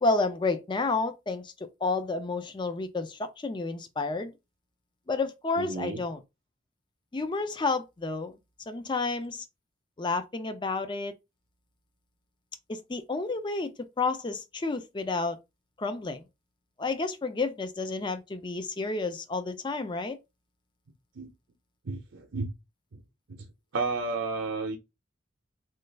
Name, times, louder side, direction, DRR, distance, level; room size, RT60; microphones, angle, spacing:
voice 1, 0.0-1.5 1.8-4.3 5.1-6.2 7.1-8.4 8.7-9.4 10.0-11.1 12.7-15.4 15.8-16.3 16.8-20.2, left 3 dB, 25° left, 0.4 m, -30 dB
voice 2, 5.6-6.0 21.2-21.3 21.9-22.5 22.9-23.0 23.7-24.8, right 3 dB, 70° right, 0.6 m, -32 dB
3.2 x 2.4 x 3.3 m
head